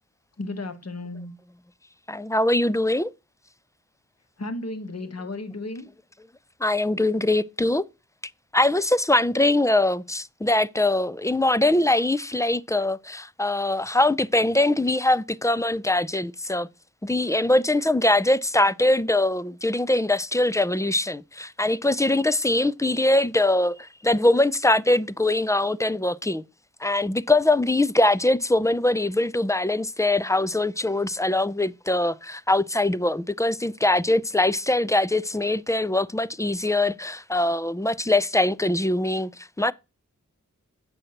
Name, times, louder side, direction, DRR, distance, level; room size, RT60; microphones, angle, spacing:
voice 1, 0.4-1.3 4.4-5.9, left 2 dB, 55° left, 1.3 m, -34 dB
voice 2, 2.1-3.1 6.6-7.8 8.5-16.7 17.0-26.4 26.8-39.7, left 2 dB, 10° left, 0.4 m, -22 dB
7.7 x 6.4 x 2.9 m
wide cardioid pair, 40°, 31 cm